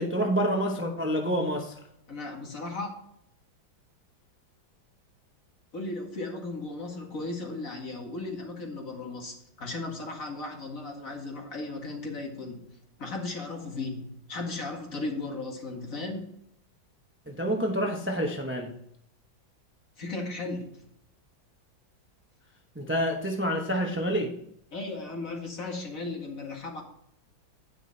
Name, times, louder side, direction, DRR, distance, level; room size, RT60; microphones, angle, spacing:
voice 1, 0.0-1.7 17.3-18.7 22.8-24.3, equal, 15° right, 2 dB, 0.5 m, -28 dB
voice 2, 2.1-2.9 5.7-12.6 13.0-16.3 20.0-20.7 24.7-26.8, left 2 dB, 45° left, 1 dB, 2.2 m, -36 dB
9.9 x 6.1 x 4.1 m, 0.70 s
omnidirectional pair, 2.2 m